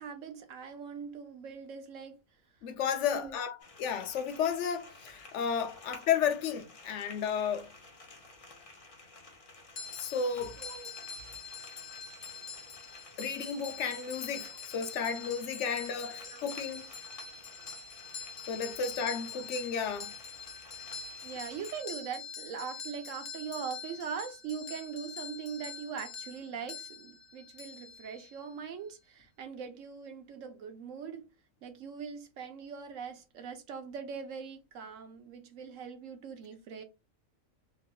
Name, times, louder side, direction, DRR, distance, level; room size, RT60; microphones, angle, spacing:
voice 1, 0.0-2.2 3.1-3.4 10.6-10.9 16.1-16.5 18.8-18.9 21.2-31.3 31.6-36.8, right 6 dB, 70° right, 1.0 m, -41 dB
voice 2, 2.6-7.7 10.0-10.6 13.2-16.9 18.5-20.2, left 7 dB, 70° left, 0.8 m, -33 dB
sound 1, 3.6-21.8, left 2 dB, 35° left, 0.5 m, -53 dB
sound 2, 9.8-28.5, left 6 dB, 90° left, 0.3 m, -45 dB
3.0 x 2.3 x 2.7 m
omnidirectional pair, 1.4 m